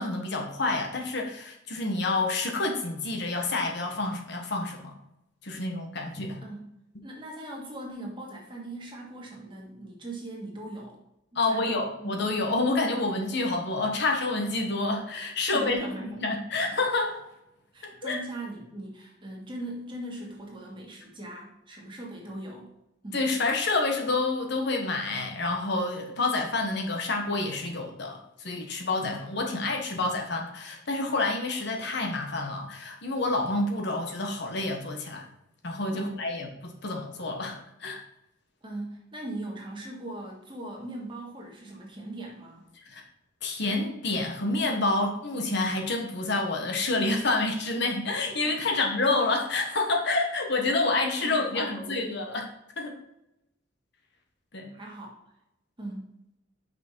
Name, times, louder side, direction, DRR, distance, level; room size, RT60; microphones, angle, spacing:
voice 1, 0.0-4.9 5.4-6.4 11.3-15.8 16.2-17.2 17.8-18.2 23.1-35.2 35.6-38.0 42.9-43.0 43.4-52.4 52.8-53.0 54.5-54.7, left 2 dB, 60° left, 2 dB, 1.2 m, -28 dB
voice 2, 7.0-11.0 11.4-12.1 15.5-16.2 17.7-22.7 23.0-23.2 35.9-36.2 38.6-42.7 48.4-48.8 51.2-52.1 54.7-55.1 55.8-56.2, right 1 dB, 25° right, -2 dB, 1.8 m, -39 dB
5.9 x 5.8 x 4.5 m, 0.86 s
head